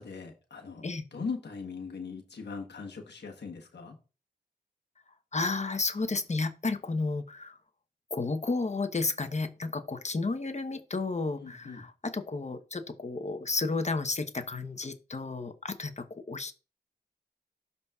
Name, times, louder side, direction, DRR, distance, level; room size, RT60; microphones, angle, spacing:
voice 1, 0.0-0.8 1.1-4.0 11.4-11.8, left 5 dB, 75° left, 3 dB, 1.2 m, -40 dB
voice 2, 5.3-7.6 8.1-16.5, left 3 dB, 40° left, 8 dB, 1.0 m, -32 dB
12.0 x 4.1 x 2.4 m, 0.33 s
cardioid pair, 50°, 18 cm